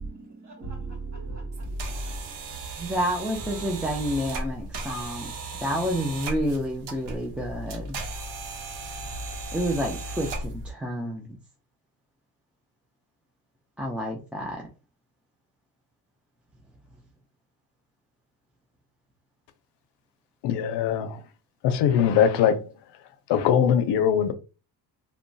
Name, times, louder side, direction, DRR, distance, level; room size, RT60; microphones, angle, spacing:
voice 1, 0.0-2.4 3.5-3.7, right 2 dB, 45° right, 1.3 m, -36 dB
sound 1, 1.5-10.7, right 2 dB, 85° right, 0.9 m, -36 dB
voice 2, 2.8-5.3 5.6-8.0 9.5-11.4 13.8-14.6, equal, 5° right, 0.3 m, -29 dB
voice 3, 20.4-21.2 21.6-22.6 23.3-24.3, left 8 dB, 80° left, 0.6 m, -21 dB
2.9 x 2.2 x 2.6 m
cardioid pair, 140°, 41 cm